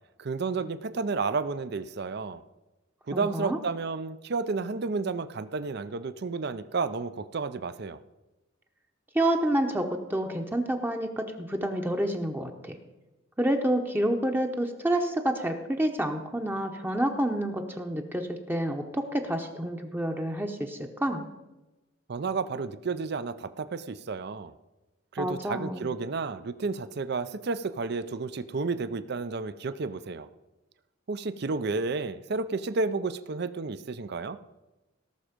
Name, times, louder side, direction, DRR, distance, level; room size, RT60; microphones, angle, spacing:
voice 1, 0.2-2.4 3.1-8.0 22.1-24.5 25.1-30.3 31.1-34.4, right 4 dB, 55° right, 14 dB, 0.5 m, -31 dB
voice 2, 3.1-3.6 9.1-12.8 13.4-21.2 25.2-25.9, right 1 dB, 10° right, 4 dB, 0.8 m, -28 dB
18.0 x 6.2 x 5.1 m, 1.0 s
head